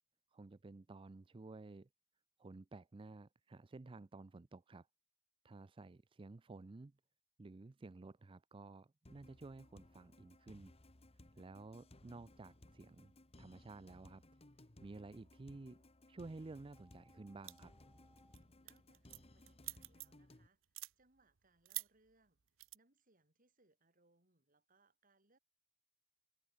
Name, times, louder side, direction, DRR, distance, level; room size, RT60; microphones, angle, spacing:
voice 1, 0.3-1.9 2.4-4.9 5.4-6.9 7.4-10.7 11.4-13.1 13.4-14.2 14.8-15.8 16.1-17.7, right 3 dB, 25° right, 0.4 m, -53 dB
sound 1, 9.1-20.5, left 1 dB, 30° left, 1.6 m, -62 dB
sound 2, 16.7-18.4, equal, ahead, 2.3 m, -71 dB
sound 3, 17.5-17.8 18.2-18.4 18.7-20.3 20.6-20.9 21.7-21.9 22.6-22.8, right 20 dB, 85° right, 0.7 m, -46 dB
voice 2, 18.6-22.4 22.7-25.4, right 2 dB, 45° right, 4.8 m, -75 dB
head